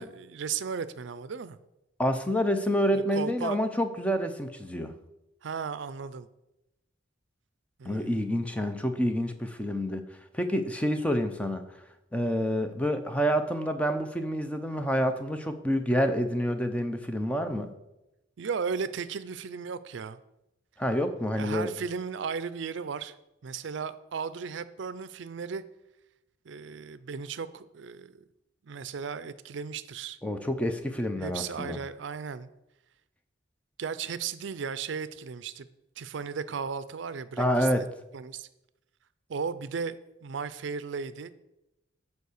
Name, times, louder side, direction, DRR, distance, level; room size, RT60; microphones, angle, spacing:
voice 1, 0.0-1.6 2.9-3.6 5.4-6.3 7.8-8.3 18.4-20.2 21.3-23.2 23.4-25.6 26.5-28.2 28.6-30.2 31.2-32.5 33.8-35.7 36.0-37.9 38.1-38.5 39.3-40.0 40.2-41.3, right 6 dB, 75° right, 14 dB, 0.4 m, -35 dB
voice 2, 2.0-4.9 7.9-10.0 10.3-11.6 12.1-17.7 20.8-21.7 30.2-31.8 37.4-37.9, equal, 5° left, 7 dB, 0.6 m, -28 dB
8.1 x 4.7 x 6.5 m, 0.91 s
head